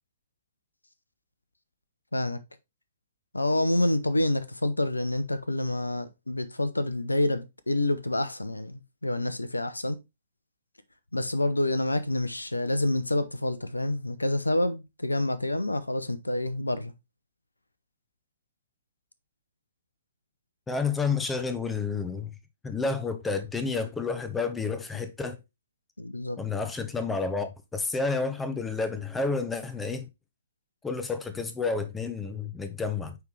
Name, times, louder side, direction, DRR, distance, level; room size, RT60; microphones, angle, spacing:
voice 1, 3.3-10.0 11.1-16.9 26.0-26.4, left 1 dB, 85° left, 0.7 m, -28 dB
voice 2, 20.7-22.3 22.6-25.4 26.4-30.1 30.8-33.2, left 4 dB, 10° left, 0.8 m, -30 dB
9.2 x 3.5 x 3.2 m
figure-of-eight pair, 120°, 0 cm